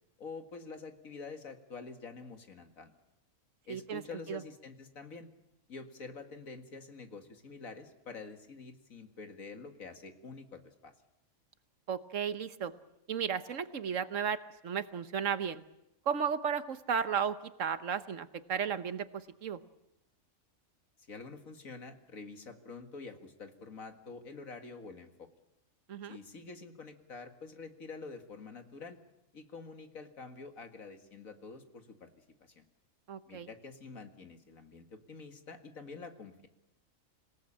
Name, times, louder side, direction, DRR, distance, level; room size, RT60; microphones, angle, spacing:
voice 1, 0.2-2.9 3.7-5.3 5.7-10.9 21.1-25.3 26.1-29.0 29.3-32.6 33.3-36.5, left 4 dB, 80° left, 6 dB, 2.4 m, -47 dB
voice 2, 3.7-4.0 4.3-4.4 11.9-12.7 13.1-15.6 16.1-19.6 25.9-26.2 33.1-33.5, right 7 dB, 70° right, 12 dB, 1.4 m, -34 dB
27.0 x 18.0 x 8.7 m, 0.91 s
omnidirectional pair, 1.4 m